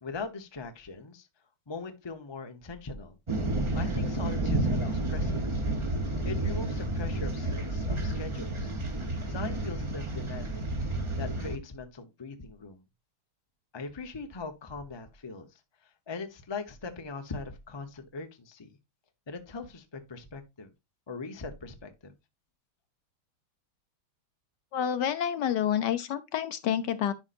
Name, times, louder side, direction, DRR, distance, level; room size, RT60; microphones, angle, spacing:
voice 1, 0.0-1.3 1.7-3.2 3.7-5.6 6.2-8.7 9.3-10.7 11.2-12.8 13.7-18.7 19.3-20.7 21.1-22.1, left 4 dB, 40° left, 0.3 m, -40 dB
sound 1, 3.3-11.6, right 2 dB, 25° right, 0.6 m, -30 dB
voice 2, 24.7-27.1, left 9 dB, 65° left, 1.2 m, -28 dB
10.5 x 5.5 x 2.5 m
omnidirectional pair, 2.3 m